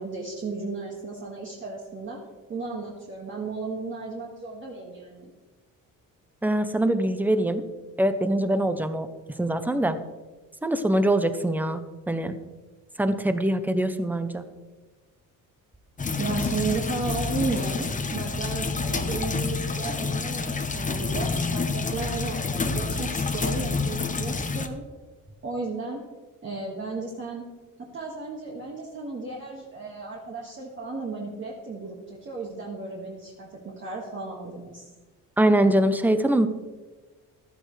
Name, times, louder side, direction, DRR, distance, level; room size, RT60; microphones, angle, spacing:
voice 1, 0.0-2.2 2.5-5.3 16.2-24.8 25.4-26.0 26.4-27.5 27.9-34.9, right 3 dB, 35° right, -3 dB, 2.0 m, -34 dB
voice 2, 6.4-7.6 8.0-9.1 9.4-10.0 10.6-12.4 13.0-14.5 35.4-36.5, right 1 dB, 5° right, 10 dB, 0.8 m, -23 dB
sound 1, 16.0-24.7, left 4 dB, 25° left, 1.0 m, -28 dB
15.5 x 13.0 x 3.3 m, 1.2 s
cardioid pair, 135°, 34 cm